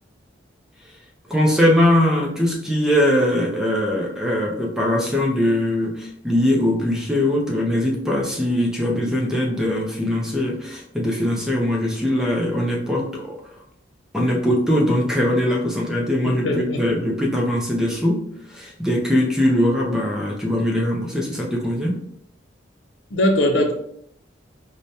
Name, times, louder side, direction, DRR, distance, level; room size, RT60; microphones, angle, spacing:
voice 1, 1.3-13.4 14.1-18.2 18.5-21.9, left 1 dB, 5° right, -1 dB, 0.5 m, -21 dB
voice 2, 16.2-17.0 23.1-23.7, left 1 dB, 80° left, 4 dB, 0.6 m, -21 dB
4.8 x 2.2 x 2.7 m, 0.71 s
head